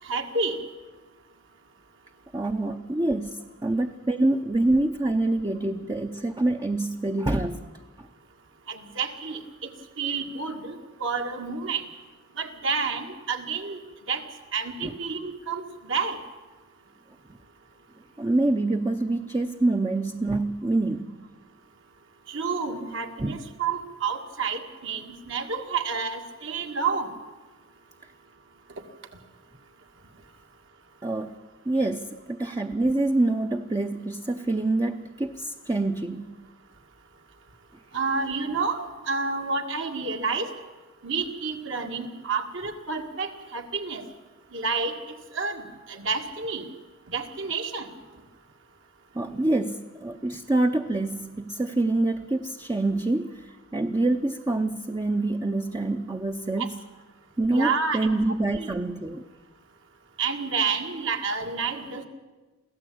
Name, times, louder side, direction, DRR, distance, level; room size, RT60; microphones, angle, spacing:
voice 1, 0.1-0.6 8.7-9.4 10.0-11.8 12.4-13.8 14.1-14.2 14.5-15.6 15.9-16.2 22.3-27.1 37.9-40.5 41.0-44.0 44.5-44.9 45.3-45.6 45.9-46.7 47.1-47.9 56.6-56.7 57.5-58.1 58.5-58.7 60.2-62.1, right 5 dB, 65° right, 4 dB, 2.2 m, -29 dB
voice 2, 2.3-7.6 14.8-14.9 18.2-21.3 23.2-23.4 31.0-31.3 31.7-36.3 49.2-53.3 53.7-56.8 57.4-59.2, right 2 dB, 20° right, 5 dB, 0.7 m, -26 dB
23.5 x 15.5 x 8.6 m, 1.2 s
head